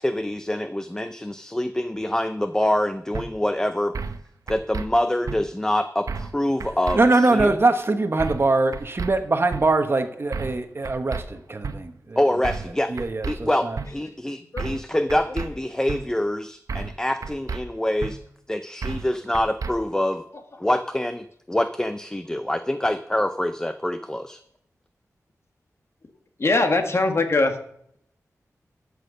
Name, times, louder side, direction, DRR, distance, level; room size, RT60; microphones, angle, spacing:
voice 1, 0.0-3.9 4.5-7.5 12.2-12.9 13.3-18.2 18.5-20.2 20.6-24.4, left 1 dB, 10° left, 10 dB, 0.5 m, -25 dB
sound 1, 3.1-3.3 3.9-4.2 4.5-4.9 5.3-5.4 6.1-6.3 6.6-7.0 7.4-7.5 8.2-8.5 8.7-9.1 9.5-9.6 10.3-10.6 10.8-11.2 11.6-11.8 12.4-12.7 13.0-13.4 13.8-13.9 14.6-14.8 15.1-15.5 15.9-16.0 16.7-17.0 17.2-17.6 18.0-18.1 18.8-19.1 19.3-19.7, right 5 dB, 70° right, 0.7 m, -31 dB
voice 2, 6.9-12.2 12.9-13.8, right 2 dB, 40° right, 8 dB, 1.1 m, -22 dB
voice 3, 26.4-27.5, left 2 dB, 50° left, 6 dB, 1.5 m, -21 dB
13.0 x 6.5 x 6.5 m, 0.70 s
wide cardioid pair, 105°, 6 cm